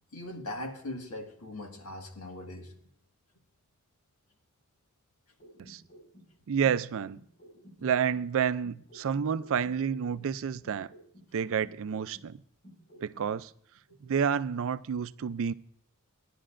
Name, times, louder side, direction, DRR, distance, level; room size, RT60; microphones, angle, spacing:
voice 1, 0.1-2.7 7.8-7.9 13.9-14.0, left 1 dB, 80° left, 1.8 m, -40 dB
sound 1, 5.4-8.3 8.6-12.3 12.6-13.3, equal, 60° left, 5.9 m, -54 dB
voice 2, 6.5-7.2 7.8-10.9 11.3-12.4 13.0-13.5 14.0-15.5, right 7 dB, 65° right, 0.4 m, -29 dB
18.5 x 11.0 x 2.5 m
head